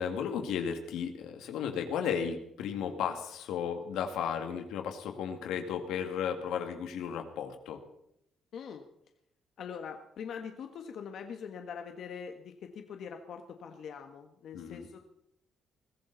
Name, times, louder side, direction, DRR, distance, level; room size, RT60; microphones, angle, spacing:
voice 1, 0.0-7.8 14.5-14.8, left 7 dB, 90° left, 6 dB, 2.1 m, -34 dB
voice 2, 8.5-8.8 9.6-15.0, left 7 dB, 70° left, 5 dB, 1.5 m, -43 dB
22.0 x 15.5 x 4.1 m, 0.77 s
cardioid pair, 90°, 0 cm